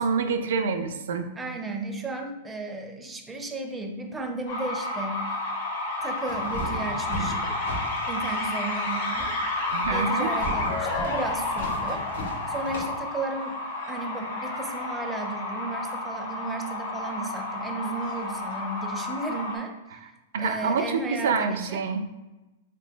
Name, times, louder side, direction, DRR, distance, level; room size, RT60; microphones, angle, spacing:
voice 1, 0.0-1.3 9.7-10.3 20.3-22.0, right 5 dB, 75° right, 7 dB, 0.4 m, -27 dB
voice 2, 1.4-5.3 6.0-7.8 8.1-9.4 9.9-12.1 12.5-13.6 13.9-20.0 20.4-21.8, right 3 dB, 10° right, 3 dB, 0.5 m, -34 dB
sound 1, 4.5-19.6, left 2 dB, 65° left, 1.3 m, -31 dB
sound 2, 6.3-13.0, equal, 80° left, 0.9 m, -37 dB
3.1 x 2.9 x 3.4 m, 1.0 s
hypercardioid pair, 130°, 0 cm